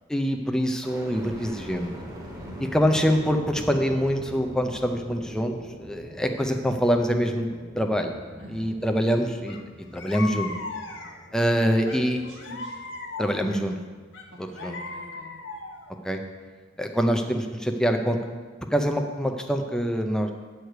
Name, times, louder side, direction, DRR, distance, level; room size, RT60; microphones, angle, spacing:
voice 1, 0.1-1.9 2.7-7.5 7.8-8.1 8.5-9.6 9.9-10.5 11.3-12.2 13.2-13.7 14.4-14.8 16.0-16.2 16.8-18.2 18.7-20.3, equal, 5° left, 4 dB, 0.6 m, -25 dB
sound 1, 0.8-14.8 15.3-16.1, equal, 20° right, 1.2 m, -44 dB
voice 2, 2.4-2.8 8.4-8.7 11.6-12.8 14.3-15.4, equal, 80° right, -4 dB, 2.1 m, -44 dB
sound 2, 9.5-9.6 9.9-11.3 11.9-13.6 14.1-15.9, left 3 dB, 70° left, 0.9 m, -37 dB
9.2 x 4.7 x 6.6 m, 1.4 s
head